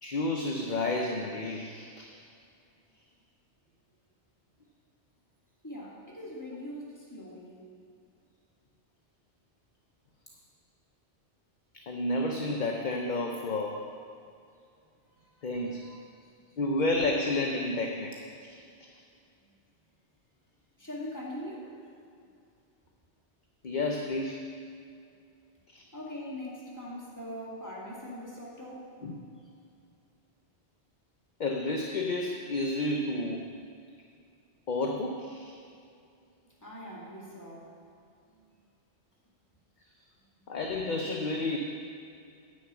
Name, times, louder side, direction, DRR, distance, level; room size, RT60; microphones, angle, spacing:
voice 1, 0.0-2.1 11.7-13.8 15.4-16.0 16.6-18.1 18.4-18.6 23.6-24.5 25.7-25.8 29.0-29.3 31.4-33.4 34.7-35.5 40.5-41.6, left 2 dB, 45° left, 2 dB, 0.8 m, -31 dB
voice 2, 5.6-7.7 15.1-15.8 16.2-16.6 20.8-21.7 25.9-28.9 36.6-37.8 38.3-38.4, left 1 dB, 15° left, -4 dB, 2.0 m, -42 dB
9.9 x 6.4 x 8.0 m, 2.4 s
omnidirectional pair, 1.2 m